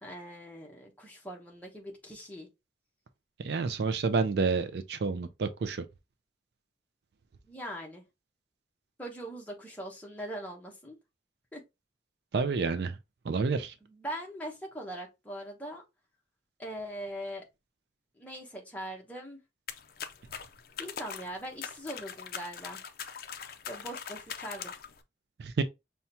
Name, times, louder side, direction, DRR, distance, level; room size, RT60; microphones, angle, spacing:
voice 1, 0.0-2.5 7.5-8.0 9.0-11.0 11.5-11.6 13.8-15.8 16.6-17.4 18.2-19.4 20.8-22.8 23.7-24.7, equal, 10° left, 0.9 m, -41 dB
voice 2, 3.4-5.8 12.3-13.0 13.3-13.7 25.4-25.6, right 4 dB, 65° right, 0.4 m, -29 dB
sound 1, 19.7-25.0, left 7 dB, 50° left, 0.4 m, -42 dB
5.6 x 2.2 x 2.7 m
head